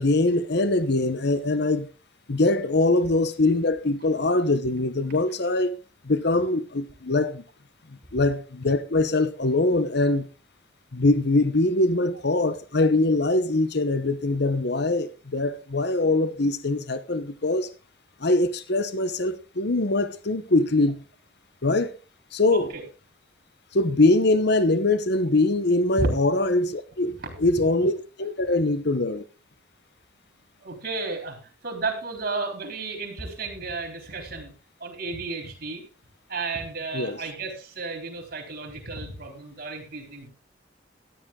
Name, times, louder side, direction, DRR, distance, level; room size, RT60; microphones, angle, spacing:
voice 1, 0.0-1.9 2.3-5.7 6.0-7.4 8.1-10.3 10.9-17.7 18.2-21.0 21.6-21.9 22.3-22.7 23.7-27.1 27.4-29.3 36.9-37.2, left 2 dB, 60° left, 1.0 m, -23 dB
voice 2, 22.5-22.8 26.0-26.1 27.2-27.5 30.6-31.4 31.6-34.5 34.8-35.8 36.3-40.3, right 3 dB, 55° right, 3.8 m, -33 dB
14.0 x 10.0 x 3.7 m
head